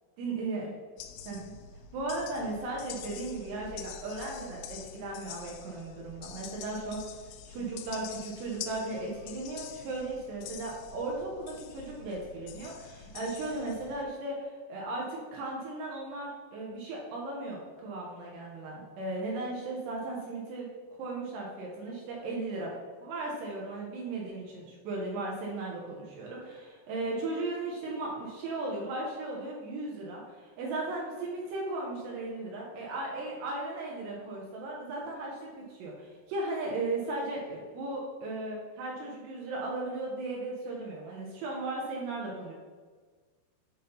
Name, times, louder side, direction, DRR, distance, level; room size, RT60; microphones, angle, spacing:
voice 1, 0.2-0.7 1.2-1.5 1.9-7.1 7.5-20.7 21.0-22.7 23.0-42.5, right 2 dB, 70° right, -3 dB, 2.9 m, -36 dB
sound 1, 1.0-14.1, left 8 dB, 85° left, 2.7 m, -46 dB
8.7 x 3.7 x 5.6 m, 1.5 s
omnidirectional pair, 5.8 m